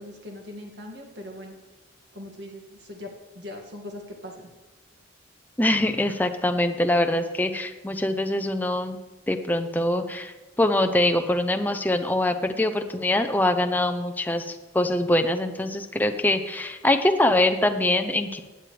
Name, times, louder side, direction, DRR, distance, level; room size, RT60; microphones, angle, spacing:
voice 1, 0.0-1.6 2.1-4.5, left 1 dB, 60° right, 2 dB, 2.0 m, -40 dB
voice 2, 5.6-9.0 9.3-18.4, left 1 dB, 10° left, 7 dB, 0.5 m, -23 dB
15.5 x 9.4 x 3.3 m, 1.2 s
head